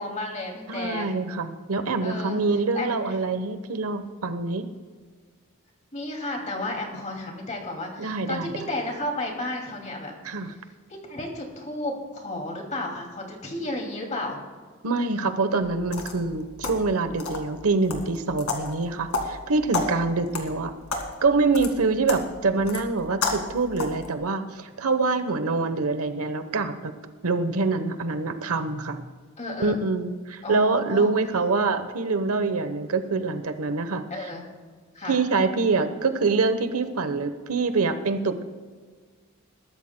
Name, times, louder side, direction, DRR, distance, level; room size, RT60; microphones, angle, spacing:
voice 1, 0.0-1.1 2.0-2.4 2.7-3.2 5.9-10.1 10.9-14.4 29.4-30.0 30.4-31.1 34.1-34.4 34.9-35.2, left 1 dB, 35° left, 1 dB, 2.4 m, -32 dB
voice 2, 0.7-4.7 8.0-8.7 10.2-10.5 14.8-20.7 21.2-26.9 27.2-29.1 29.6-34.0 35.1-38.4, right 3 dB, 80° right, 9 dB, 1.0 m, -25 dB
sound 1, 15.6-24.1, left 3 dB, 90° left, 2.0 m, -33 dB
21.5 x 13.0 x 2.2 m, 1.5 s
head